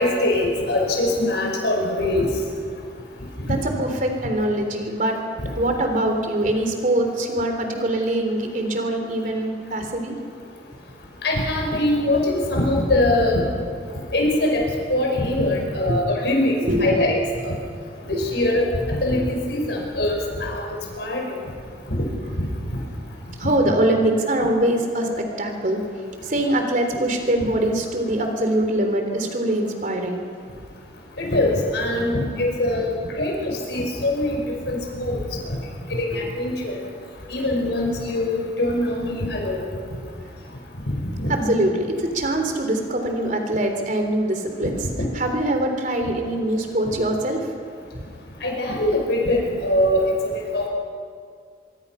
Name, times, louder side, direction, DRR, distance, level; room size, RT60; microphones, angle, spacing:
voice 1, 0.0-2.3 5.4-5.5 11.2-13.4 14.1-14.6 14.9-17.2 17.5-17.6 18.1-20.6 21.0-21.3 21.9-22.1 22.7-22.8 23.4-23.5 27.4-27.5 31.2-34.4 34.7-35.2 36.0-36.8 37.3-39.6 40.9-41.3 48.4-50.1 50.5-50.7, left 1 dB, 75° left, 0 dB, 5.5 m, -22 dB
voice 2, 3.5-5.2 5.6-10.2 15.8-16.0 16.6-17.0 23.4-25.8 26.2-30.2 41.3-44.8 45.2-47.4, right 1 dB, 45° right, 4 dB, 3.5 m, -23 dB
24.5 x 24.0 x 5.8 m, 2.1 s
head